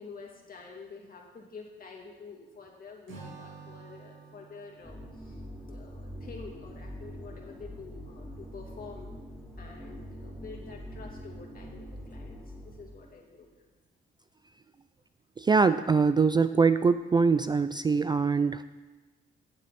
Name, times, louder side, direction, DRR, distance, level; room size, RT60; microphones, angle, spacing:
voice 1, 0.0-5.4 5.7-9.1 9.5-13.5, left 4 dB, 45° left, 0 dB, 2.5 m, -48 dB
Acoustic guitar / Strum, 3.1-6.3, right 4 dB, 75° right, 3.6 m, -50 dB
sound 1, 4.8-13.1, equal, 5° right, 3.0 m, -44 dB
voice 2, 15.4-18.6, right 5 dB, 20° right, 12 dB, 0.3 m, -23 dB
17.0 x 7.4 x 4.2 m, 1.2 s
cardioid pair, 90°, 20 cm